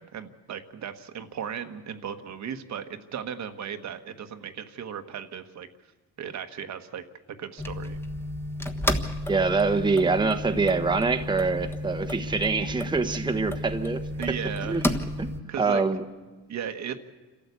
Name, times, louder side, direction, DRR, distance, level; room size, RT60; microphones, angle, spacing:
voice 1, 0.0-5.7 6.2-8.0 14.2-14.8 15.5-15.8 16.5-17.0, right 8 dB, 55° right, 8 dB, 1.4 m, -36 dB
sound 1, 7.6-15.4, left 1 dB, 5° left, 1.3 m, -32 dB
voice 2, 9.3-14.4 14.6-14.9 15.2-15.3 15.6-16.0, right 4 dB, 15° right, 6 dB, 1.1 m, -25 dB
27.5 x 13.0 x 8.3 m, 1.3 s
cardioid pair, 100°, 33 cm